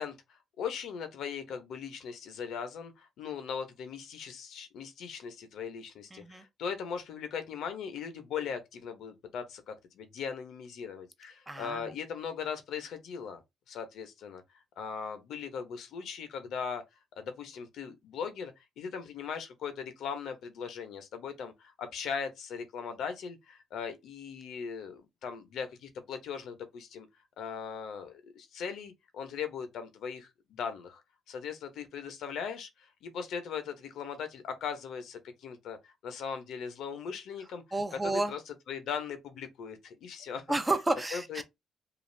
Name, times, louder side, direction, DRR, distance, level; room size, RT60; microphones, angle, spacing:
voice 1, 0.0-13.4 13.7-14.4 14.8-16.8 17.2-27.1 27.4-31.0 31.3-35.8 36.0-37.6 38.0-40.4 41.1-41.4, left 6 dB, 75° left, 0.7 m, -39 dB
voice 2, 6.1-6.4 11.5-11.8 37.7-38.3 40.5-41.4, right 2 dB, 15° right, 0.5 m, -31 dB
2.4 x 2.3 x 3.1 m
cardioid pair, 90°, 0 cm